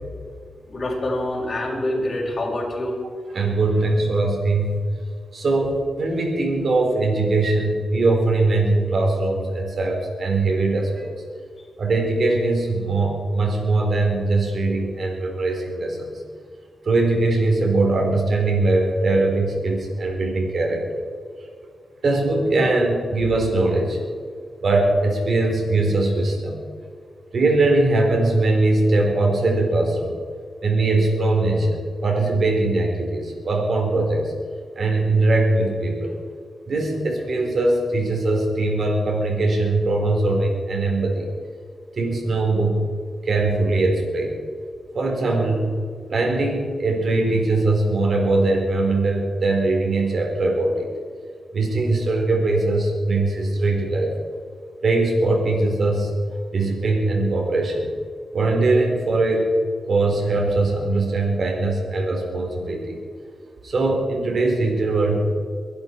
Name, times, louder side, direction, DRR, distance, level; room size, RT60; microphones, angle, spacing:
voice 1, 0.6-3.0, left 1 dB, 40° left, -4 dB, 5.3 m, -26 dB
voice 2, 3.3-4.9 5.3-11.1 11.8-16.2 16.8-21.0 22.0-24.0 24.6-26.6 27.3-30.2 30.6-34.3 34.7-36.2 36.6-41.3 42.0-42.8 43.2-44.4 44.9-45.7 46.1-50.9 51.5-54.1 54.8-56.1 56.5-57.9 58.3-59.5 59.9-63.0 63.6-65.4, right 2 dB, 55° right, 1 dB, 4.5 m, -21 dB
22.5 x 12.0 x 4.8 m, 2.1 s
cardioid pair, 90°, 0 cm